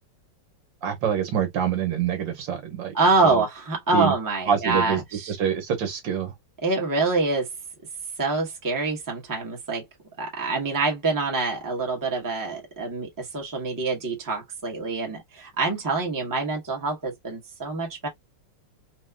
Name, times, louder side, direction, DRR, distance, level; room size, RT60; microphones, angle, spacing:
voice 1, 0.8-2.9 3.2-3.4 3.9-4.1 4.5-5.0 5.3-6.3, right 8 dB, 85° right, 1.8 m, -25 dB
voice 2, 2.9-5.3 6.6-7.5 8.2-9.8 10.2-18.1, right 3 dB, 15° right, 0.8 m, -25 dB
4.2 x 2.2 x 2.2 m
omnidirectional pair, 2.0 m